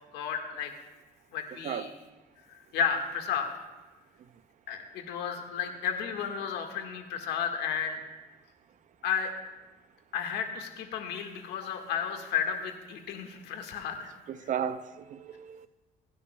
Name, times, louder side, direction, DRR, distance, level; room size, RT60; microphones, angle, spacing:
voice 1, 0.1-0.7 1.3-1.9 2.7-3.5 4.7-8.0 9.0-9.3 10.1-14.1, left 7 dB, 80° left, 1.5 m, -32 dB
voice 2, 14.3-15.7, right 8 dB, 50° right, 0.5 m, -34 dB
23.0 x 10.0 x 2.2 m
cardioid pair, 110°, 17 cm